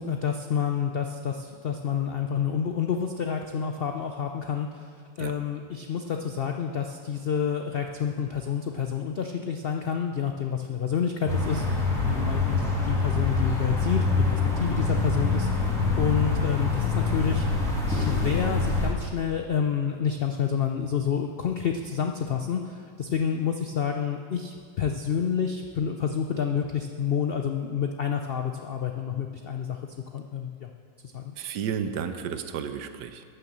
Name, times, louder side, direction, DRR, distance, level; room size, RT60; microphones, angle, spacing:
voice 1, 0.0-4.9 5.2-15.6 16.0-29.8 30.1-30.7 31.1-31.3, left 7 dB, 90° left, 4 dB, 0.5 m, -29 dB
sound 1, 11.3-18.9, left 3 dB, ahead, 2.7 m, -25 dB
voice 2, 31.4-33.2, right 7 dB, 85° right, 9 dB, 1.3 m, -32 dB
12.0 x 6.7 x 7.5 m, 2.1 s
omnidirectional pair, 1.8 m